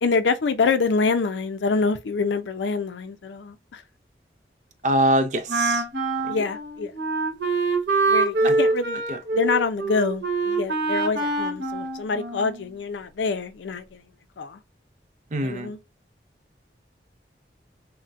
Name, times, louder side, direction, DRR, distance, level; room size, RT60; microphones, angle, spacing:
voice 1, 0.0-3.8 6.3-6.9 8.1-9.0 9.3-14.0 14.4-14.6 15.4-15.8, left 4 dB, 85° left, 0.5 m, -26 dB
voice 2, 4.8-5.8 6.2-6.3 8.4-8.6 9.1-9.2 15.3-15.7, right 1 dB, 40° right, 0.5 m, -23 dB
Wind instrument woodwind instrument, 5.5-12.7, right 3 dB, 85° right, 1.1 m, -25 dB
4.0 x 2.1 x 2.4 m
head